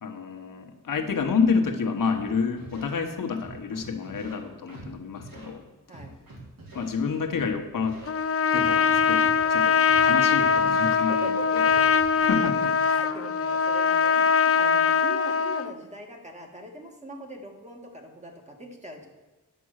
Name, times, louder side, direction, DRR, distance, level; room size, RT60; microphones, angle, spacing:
voice 1, 0.0-5.6 6.7-8.0 8.5-11.4 12.1-12.7, left 5 dB, 75° left, 4 dB, 1.2 m, -29 dB
Scratching (performance technique), 2.1-2.2 2.6-2.8 3.4-4.4 4.7-4.9 5.2-5.5 5.9-6.9 7.3-7.5 7.8-8.1 8.6-9.5 9.9-10.0 10.4-12.2, right 2 dB, 85° right, 2.9 m, -45 dB
Trumpet, 8.1-15.7, left 6 dB, 45° left, 0.5 m, -22 dB
voice 2, 10.9-11.8 12.4-19.1, right 1 dB, 20° right, 1 dB, 1.7 m, -41 dB
10.0 x 6.9 x 6.4 m, 1.2 s
wide cardioid pair, 165°, 33 cm